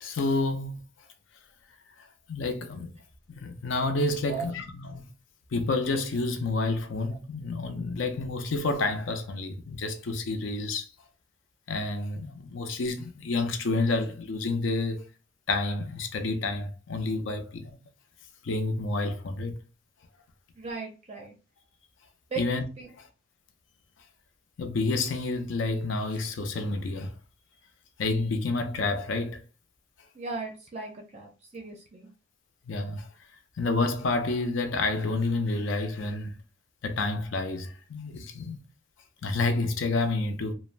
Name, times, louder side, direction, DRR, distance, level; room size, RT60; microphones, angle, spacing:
voice 1, 0.0-0.8 2.3-2.9 3.3-5.1 5.5-10.9 11.7-15.1 15.5-17.8 18.4-19.6 22.4-22.6 22.9-23.0 24.6-27.1 28.0-29.4 30.8-30.9 32.7-33.1 33.6-36.3 36.8-38.6 39.2-40.5, left 3 dB, 75° left, 0.5 m, -29 dB
voice 2, 20.6-21.3 22.3-22.4 22.8-22.9 30.2-32.1, right 4 dB, 35° right, 0.4 m, -37 dB
3.2 x 2.0 x 2.4 m
head